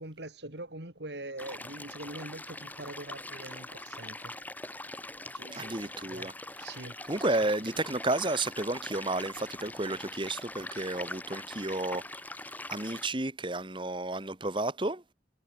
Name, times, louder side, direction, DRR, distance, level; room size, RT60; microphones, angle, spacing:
voice 1, 0.0-4.4 5.2-7.0 7.6-7.9, right 2 dB, 70° right, 4.0 m, -44 dB
sound 1, 1.4-13.1, left 2 dB, 10° left, 7.5 m, -42 dB
voice 2, 5.5-6.3 7.1-12.0 12.7-15.0, right 2 dB, 25° right, 1.8 m, -32 dB
head